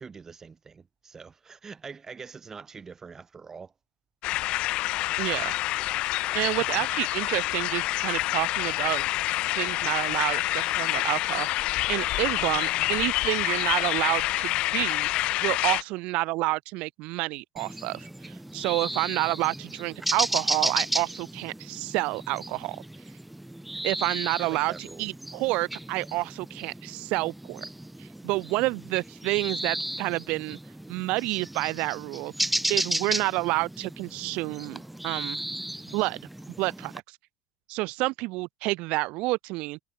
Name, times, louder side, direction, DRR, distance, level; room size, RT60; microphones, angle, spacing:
voice 1, 0.0-3.7 6.6-6.9 24.4-25.1, right 5 dB, 25° right, 2.3 m, -44 dB
sound 1, 4.2-15.8, left 17 dB, 55° left, 0.5 m, -27 dB
voice 2, 5.2-5.5 6.3-9.0 9.5-15.1 15.4-22.8 23.8-27.6 28.0-30.6 30.9-32.3 32.7-35.4 35.9-36.2 36.6-37.2 37.7-39.8, right 22 dB, 60° right, 1.4 m, -29 dB
sound 2, 17.6-37.0, right 1 dB, 5° right, 0.5 m, -34 dB
supercardioid pair, 105°, 2 cm